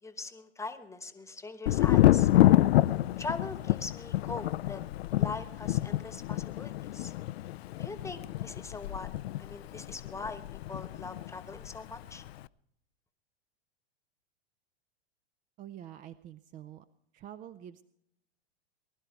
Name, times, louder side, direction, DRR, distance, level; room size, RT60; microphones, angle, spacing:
voice 1, 0.0-2.3 3.2-4.8 5.2-7.1 7.8-9.1 9.4-10.4 10.7-12.2, left 3 dB, 10° left, 11 dB, 1.1 m, -41 dB
Thunder, 1.7-11.3 11.6-12.3, left 15 dB, 70° left, 0.4 m, -27 dB
voice 2, 15.6-16.8 17.1-17.8, right 11 dB, 25° right, 14 dB, 0.4 m, -46 dB
20.0 x 11.5 x 4.5 m, 0.76 s
hypercardioid pair, 105°, 32 cm